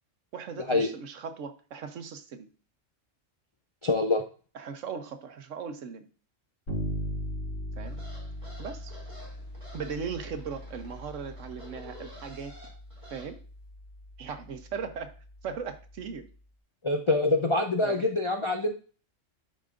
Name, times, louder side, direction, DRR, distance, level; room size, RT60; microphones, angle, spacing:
voice 1, 0.3-2.5 4.5-6.1 7.8-8.0 8.6-8.9 9.7-12.5 13.1-13.4 14.2-15.2 15.4-16.3 17.8-18.0, right 6 dB, 75° right, 9 dB, 1.2 m, -38 dB
voice 2, 3.8-4.2 16.8-18.7, left 2 dB, 45° left, 3 dB, 0.4 m, -25 dB
Bass guitar, 6.7-16.3, equal, 85° left, 3.1 m, -40 dB
sound 1, 7.8-13.3, equal, 25° right, 2.6 m, -50 dB
11.5 x 5.2 x 2.5 m, 0.38 s
omnidirectional pair, 1.3 m